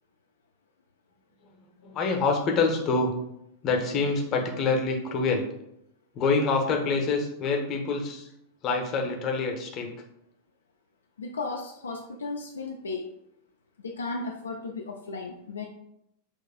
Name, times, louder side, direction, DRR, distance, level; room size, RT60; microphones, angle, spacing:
voice 1, 1.8-3.1 3.6-5.4 6.1-8.3 8.6-9.9, left 4 dB, 35° left, 3 dB, 0.7 m, -26 dB
voice 2, 11.2-13.1 13.8-15.6, left 3 dB, 70° left, 2 dB, 0.3 m, -35 dB
6.0 x 2.4 x 2.3 m, 0.78 s
figure-of-eight pair, 90°, 0 cm